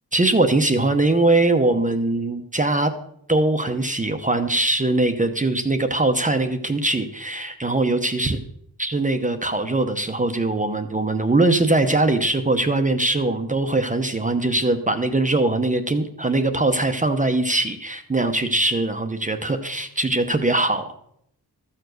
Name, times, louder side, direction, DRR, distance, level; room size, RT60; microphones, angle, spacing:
voice 1, 0.1-2.9 3.3-8.4 8.8-20.9, right 2 dB, 20° right, 7 dB, 0.8 m, -21 dB
13.5 x 7.0 x 6.3 m, 0.72 s
wide cardioid pair, 130°, 39 cm